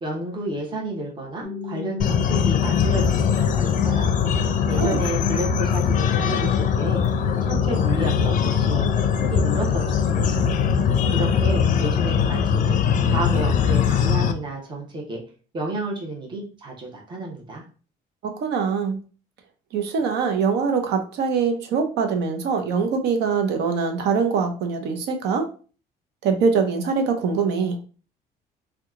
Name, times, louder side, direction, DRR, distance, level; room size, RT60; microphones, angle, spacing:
voice 1, 0.0-4.1 4.7-7.0 7.4-10.5 11.1-12.8 13.1-15.2 15.5-17.6, right 2 dB, 25° right, -2 dB, 1.0 m, -31 dB
sound 1, 1.4-11.4, left 5 dB, 15° left, 0.8 m, -32 dB
sound 2, 2.0-14.3, left 7 dB, 50° left, 0.4 m, -21 dB
voice 2, 18.4-19.0 19.7-25.5 26.2-27.8, right 5 dB, 80° right, 6 dB, 0.7 m, -23 dB
2.9 x 2.3 x 3.6 m, 0.38 s
cardioid pair, 110°, 17 cm